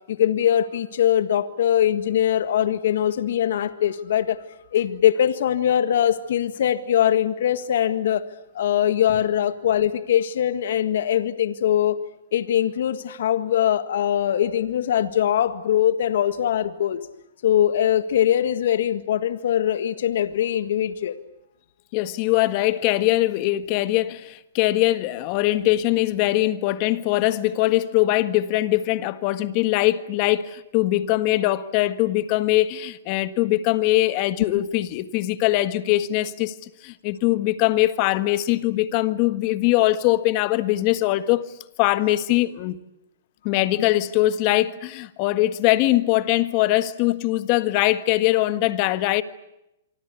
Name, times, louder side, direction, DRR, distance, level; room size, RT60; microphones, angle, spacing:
voice 1, 0.1-4.4 4.7-8.2 8.6-12.0 12.3-17.0 17.4-21.1 43.8-43.9, left 10 dB, 65° left, 1.8 m, -22 dB
voice 2, 21.9-36.5 36.8-41.5 41.8-42.8 43.4-49.2, left 16 dB, 40° left, 1.6 m, -22 dB
26.5 x 25.0 x 8.4 m
hypercardioid pair, 145°, 0 cm